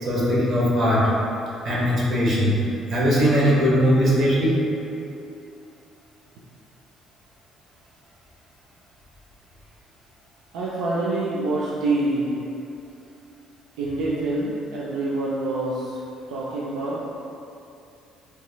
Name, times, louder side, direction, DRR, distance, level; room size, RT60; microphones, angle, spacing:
voice 1, 0.0-1.1 1.6-2.6 2.9-4.6, equal, 55° right, -6 dB, 0.9 m, -20 dB
voice 2, 10.5-12.4 13.8-16.0 16.3-17.1, right 2 dB, 90° right, -7 dB, 0.3 m, -26 dB
3.4 x 3.1 x 2.2 m, 2.7 s
supercardioid pair, 80°, 0 cm